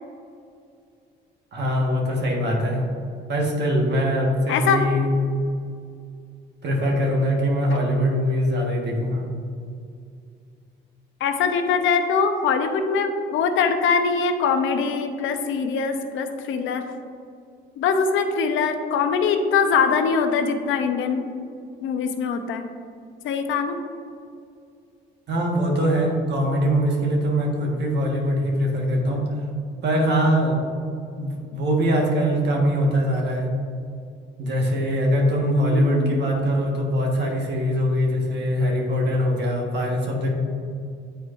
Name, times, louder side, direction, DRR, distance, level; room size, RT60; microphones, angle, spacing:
voice 1, 1.5-2.9 3.3-5.1 6.6-9.2 25.3-29.3 29.8-30.6 31.2-33.5 34.4-40.3, equal, 60° right, -1 dB, 1.5 m, -22 dB
voice 2, 4.5-4.8 11.2-16.8 17.8-21.2 21.8-22.7 23.2-23.8 35.7-36.2, left 5 dB, 85° left, 7 dB, 0.6 m, -22 dB
9.1 x 4.6 x 2.5 m, 2.3 s
cardioid pair, 90°, 20 cm